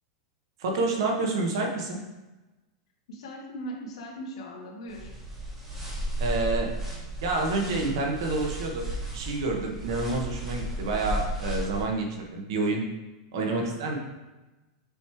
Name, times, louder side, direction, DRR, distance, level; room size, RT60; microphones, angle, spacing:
voice 1, 0.6-2.0 6.2-6.8 7.2-8.9 9.1-12.9 13.3-14.0, right 3 dB, 55° right, 1 dB, 1.1 m, -28 dB
voice 2, 3.1-5.1 13.3-13.8, right 1 dB, 75° left, -2 dB, 1.8 m, -39 dB
sound 1, 4.9-11.9, right 1 dB, 10° right, 1.4 m, -34 dB
6.8 x 3.2 x 4.5 m, 1.1 s
supercardioid pair, 180°, 3 cm